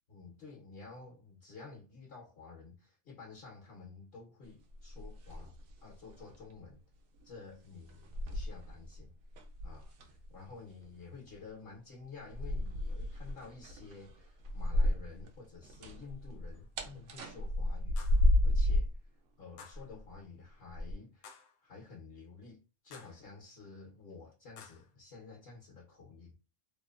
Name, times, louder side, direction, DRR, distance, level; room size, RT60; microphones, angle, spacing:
voice 1, 0.1-5.5 5.8-6.8 7.2-9.1 9.6-18.1 18.4-18.9 19.4-21.3 21.6-26.3, left 4 dB, 60° left, 1.1 m, -51 dB
sound 1, 4.7-5.8 6.1-6.4 7.2-7.3 7.9-9.0 9.3-10.3 12.3-15.3 15.5-19.0 19.7-20.1 20.7-20.9, left 1 dB, 90° right, 0.9 m, -32 dB
sound 2, 16.5-16.7 18.0-18.3 19.6-19.9 21.2-21.6 22.9-23.3 24.6-24.9, left 6 dB, 75° left, 0.8 m, -54 dB
2.8 x 2.1 x 2.4 m
omnidirectional pair, 1.2 m